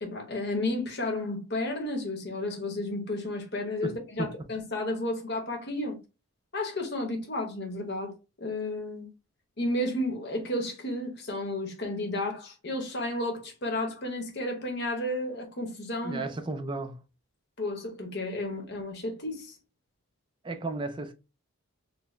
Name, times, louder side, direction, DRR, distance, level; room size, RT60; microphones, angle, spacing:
voice 1, 0.0-6.0 6.5-9.1 9.6-16.2 17.6-19.6, left 1 dB, 50° left, 1.0 m, -32 dB
voice 2, 3.8-4.5 16.0-17.0 20.4-21.1, right 2 dB, 20° right, 0.3 m, -34 dB
4.0 x 2.1 x 3.2 m
head